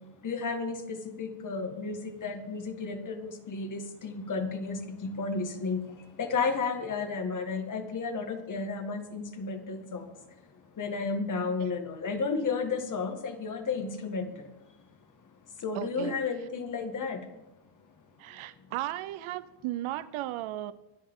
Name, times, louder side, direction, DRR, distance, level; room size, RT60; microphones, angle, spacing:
voice 1, 0.2-5.8 6.2-10.0 10.8-14.3 15.6-17.2, left 4 dB, 40° left, 2.0 m, -32 dB
voice 2, 15.7-16.2 18.2-20.7, right 14 dB, 80° right, 0.8 m, -35 dB
23.5 x 10.0 x 3.8 m
cardioid pair, 150°, 48 cm